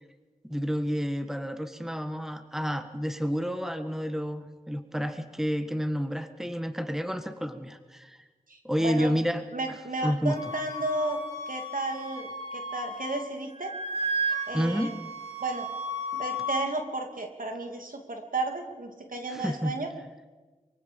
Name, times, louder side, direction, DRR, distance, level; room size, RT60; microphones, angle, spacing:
voice 1, 0.5-8.2 8.6-9.8 10.0-10.4 14.5-14.9 19.3-19.7, equal, 5° right, 8 dB, 1.6 m, -30 dB
voice 2, 8.5-9.1 9.5-11.2 11.5-13.7 14.5-14.9 15.4-15.7 16.1-19.9, right 2 dB, 75° right, 4 dB, 2.8 m, -33 dB
Wind instrument woodwind instrument, 10.4-13.3 13.5-16.6, right 1 dB, 45° left, 7.9 m, -34 dB
24.0 x 23.5 x 5.3 m, 1.3 s
wide cardioid pair, 55°, 14 cm